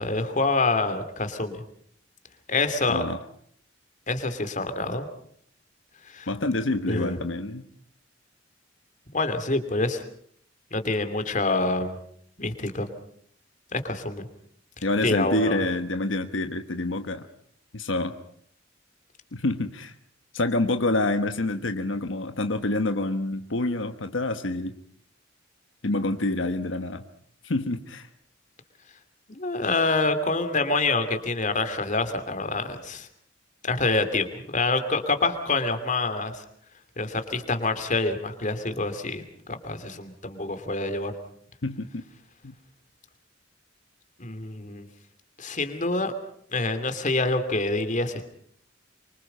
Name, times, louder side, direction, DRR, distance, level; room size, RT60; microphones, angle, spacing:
voice 1, 0.0-1.6 2.5-3.0 4.1-5.0 6.1-6.3 6.9-7.2 9.1-10.0 10.7-12.0 12.4-12.9 13.7-14.3 15.0-15.6 29.3-33.1 33.6-36.4 37.0-41.1 44.2-44.9 45.4-46.1 46.5-48.2, left 3 dB, 40° left, 9 dB, 2.7 m, -26 dB
voice 2, 6.3-7.7 14.8-17.3 17.7-18.1 19.3-19.9 20.3-24.7 25.8-27.0 27.4-28.1 41.6-42.0 42.4-42.5, left 2 dB, 80° left, 7 dB, 1.2 m, -27 dB
25.5 x 24.5 x 5.6 m, 0.63 s
head